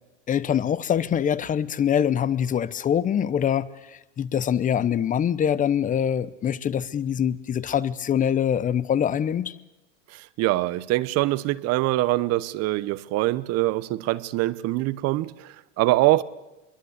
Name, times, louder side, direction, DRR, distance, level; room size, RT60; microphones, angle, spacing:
voice 1, 0.3-9.6, left 9 dB, 20° left, 0.8 m, -24 dB
voice 2, 10.1-16.2, right 17 dB, 45° right, 1.0 m, -24 dB
23.5 x 23.0 x 8.2 m
supercardioid pair, 125°, 36 cm